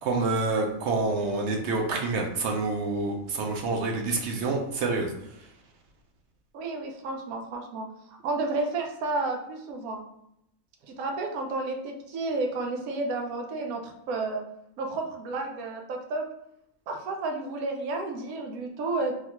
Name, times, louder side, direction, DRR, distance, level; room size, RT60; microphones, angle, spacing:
voice 1, 0.0-5.1, right 3 dB, 65° right, 1 dB, 0.7 m, -27 dB
voice 2, 6.5-10.0 10.8-14.4 14.8-16.3 16.9-19.1, right 3 dB, 85° right, 2 dB, 1.1 m, -31 dB
3.4 x 2.3 x 2.9 m, 0.78 s
omnidirectional pair, 1.5 m